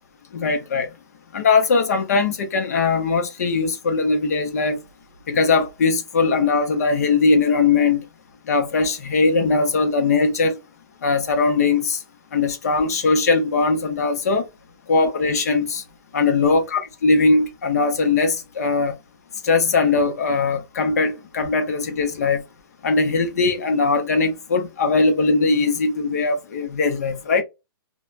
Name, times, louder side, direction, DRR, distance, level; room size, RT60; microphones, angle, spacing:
voice 1, 0.3-0.9 1.3-4.8 5.3-8.0 8.5-10.6 11.0-12.0 12.3-14.5 14.9-15.8 16.1-19.0 19.4-22.4 22.8-27.4, left 4 dB, 45° left, 0.6 m, -20 dB
3.2 x 2.1 x 2.4 m
hypercardioid pair, 175°, 12 cm